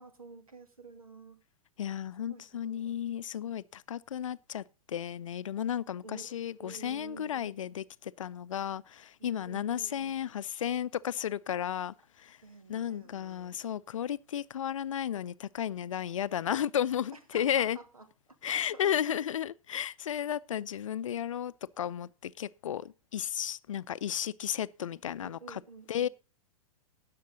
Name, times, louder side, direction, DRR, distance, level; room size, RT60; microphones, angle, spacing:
voice 1, 0.0-1.4 2.3-2.9 6.0-6.3 6.5-7.5 9.2-10.2 12.4-13.7 17.1-18.1 18.5-19.2 25.2-26.1, right 3 dB, 80° right, 2.3 m, -50 dB
voice 2, 1.8-12.4 12.7-17.8 18.4-25.6 25.9-26.1, left 10 dB, 60° left, 0.6 m, -34 dB
17.5 x 6.7 x 3.8 m
figure-of-eight pair, 100°, 18 cm